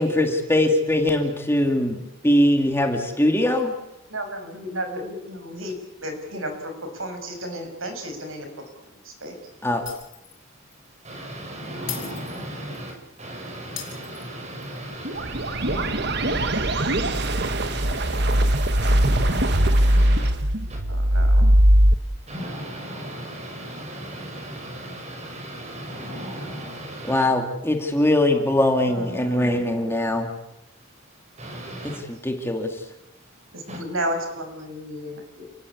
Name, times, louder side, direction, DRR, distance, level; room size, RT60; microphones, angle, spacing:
voice 1, 0.0-3.7 9.6-9.8 27.0-30.3 31.8-32.8, left 1 dB, 10° left, 4 dB, 2.5 m, -21 dB
voice 2, 4.1-5.7 6.0-8.5 9.0-9.4 20.9-21.5 28.8-29.6 33.5-35.5, equal, 85° right, 6 dB, 6.7 m, -33 dB
voice 3, 9.3-9.7 10.4-20.8 21.6-27.3 30.7-32.1 33.1-33.8, right 1 dB, 35° right, 2 dB, 7.4 m, -36 dB
Shatter, 9.9-10.4 10.7-10.9 11.9-12.9 13.8-14.8, left 11 dB, 70° left, 5.6 m, -38 dB
sound 1, 15.1-21.9, right 1 dB, 55° right, 1.4 m, -20 dB
29.5 x 19.0 x 8.6 m, 0.91 s
head